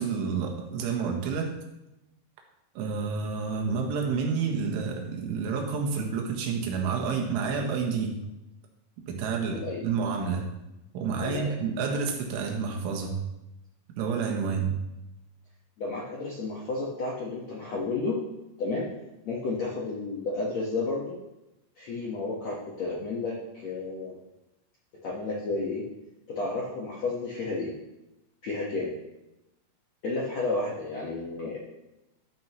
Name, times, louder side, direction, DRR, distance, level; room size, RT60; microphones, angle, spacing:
voice 1, 0.0-1.5 2.8-8.2 9.1-10.5 10.9-13.3 14.0-14.8, right 5 dB, 90° right, 1 dB, 3.9 m, -29 dB
voice 2, 11.2-11.6 15.8-18.2 18.6-18.9 19.2-21.1 21.8-24.2 25.0-25.8 26.3-27.7 28.4-28.9 30.0-31.7, left 3 dB, 85° left, -5 dB, 1.5 m, -31 dB
13.0 x 8.9 x 3.1 m, 0.94 s
omnidirectional pair, 5.4 m